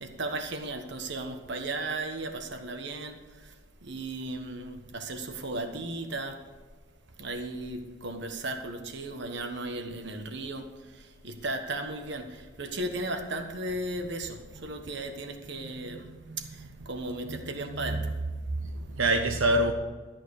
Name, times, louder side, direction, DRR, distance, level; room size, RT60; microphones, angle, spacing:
voice 1, 0.0-3.2 3.8-6.4 7.2-10.6 11.2-16.1 16.8-18.1, right 2 dB, 55° right, 1.4 m, -35 dB
voice 2, 15.6-16.7 17.2-18.3 18.6-19.7, right 1 dB, 80° right, 0.9 m, -29 dB
13.0 x 9.2 x 4.9 m
head